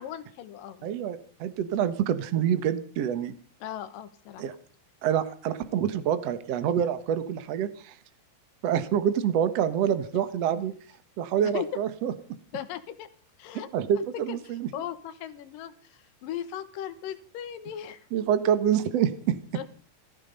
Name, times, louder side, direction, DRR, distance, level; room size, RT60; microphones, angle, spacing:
voice 1, 0.0-0.9 3.6-4.4 10.1-10.2 11.4-11.8 12.5-13.1 13.4-13.7 14.0-14.4 14.7-18.0 19.5-19.7, left 10 dB, 65° left, 11 dB, 2.5 m, -37 dB
voice 2, 0.8-3.3 4.4-4.5 5.0-7.9 8.6-10.7 11.2-12.1 13.7-14.7 18.1-19.4, right 9 dB, 80° right, 12 dB, 1.4 m, -26 dB
17.5 x 14.5 x 5.2 m, 0.43 s
omnidirectional pair, 5.0 m